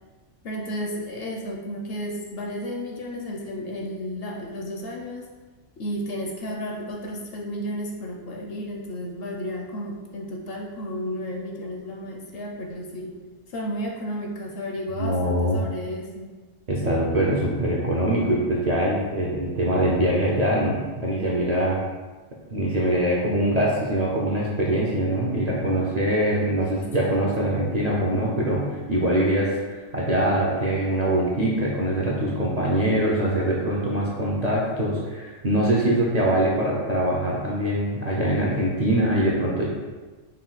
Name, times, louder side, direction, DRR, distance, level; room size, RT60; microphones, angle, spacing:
voice 1, 0.4-5.3 5.8-13.2 13.5-16.3 26.6-27.2, equal, 60° left, 0 dB, 0.7 m, -33 dB
voice 2, 15.0-15.6 16.7-21.8 22.5-39.7, right 1 dB, 50° right, -5 dB, 0.5 m, -23 dB
4.2 x 2.3 x 3.9 m, 1.3 s
omnidirectional pair, 1.2 m